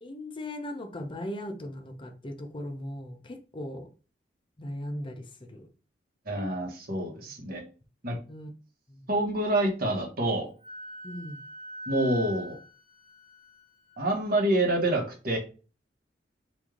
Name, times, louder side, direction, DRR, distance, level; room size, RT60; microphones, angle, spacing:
voice 1, 0.0-3.9 4.6-5.7 8.3-8.5 8.9-9.0 11.0-11.4, left 1 dB, 30° left, 0.5 m, -38 dB
voice 2, 6.3-7.6 8.0-8.1 9.1-10.5 11.9-12.6 14.0-15.4, right 1 dB, 55° right, 1.1 m, -27 dB
Wind instrument woodwind instrument, 10.6-14.1, right 1 dB, 20° right, 1.1 m, -42 dB
3.1 x 2.5 x 3.6 m
head